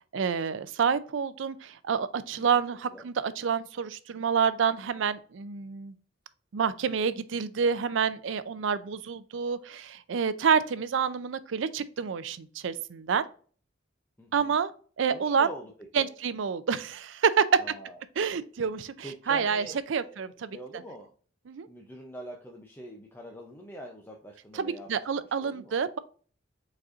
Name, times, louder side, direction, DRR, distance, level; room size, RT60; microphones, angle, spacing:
voice 1, 0.1-5.9 6.5-13.2 14.3-14.7 15.0-15.5 15.9-17.4 18.2-20.6 21.5-21.7 24.5-26.0, right 6 dB, 70° right, 0.4 m, -28 dB
voice 2, 14.2-14.6 15.1-16.1 17.6-18.0 19.0-20.3 20.5-21.1 21.7-25.0 25.4-25.7, equal, 10° left, 0.6 m, -44 dB
5.1 x 4.2 x 2.5 m
head